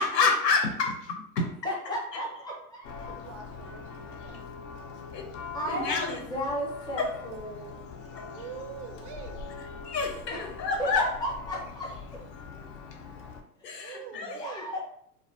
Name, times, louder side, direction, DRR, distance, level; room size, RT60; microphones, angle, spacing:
voice 1, 0.0-1.5 1.9-2.2 5.1-5.3 5.7-6.2 7.0-7.2 8.2-8.3 9.8-11.1 13.6-14.4, left 4 dB, 90° left, 2 dB, 0.7 m, -28 dB
voice 2, 1.6-3.1 5.5-7.8 10.8-11.9 13.6-13.8 14.1-14.8, equal, 10° left, -4 dB, 0.5 m, -34 dB
Church bell, 2.8-13.4, left 5 dB, 55° left, 0.5 m, -43 dB
voice 3, 3.1-4.4 8.2-9.5 13.7-14.7, right 7 dB, 50° right, 5 dB, 0.5 m, -44 dB
2.3 x 2.2 x 2.5 m, 0.66 s
hypercardioid pair, 105°, 48 cm